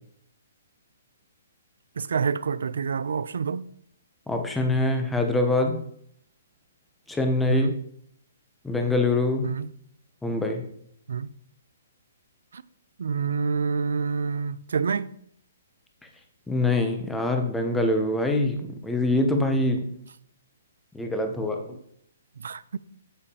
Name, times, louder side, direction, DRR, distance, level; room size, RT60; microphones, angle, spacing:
voice 1, 2.0-3.7 7.5-7.8 9.4-9.7 11.1-11.3 12.5-12.6 13.0-15.1 22.4-22.8, right 5 dB, 75° right, 0.4 m, -27 dB
voice 2, 4.3-5.8 7.1-7.7 8.6-9.5 10.2-10.6 16.5-19.8 20.9-21.8, left 2 dB, 5° left, 0.5 m, -24 dB
8.2 x 7.0 x 2.8 m
hypercardioid pair, 175°, 0 cm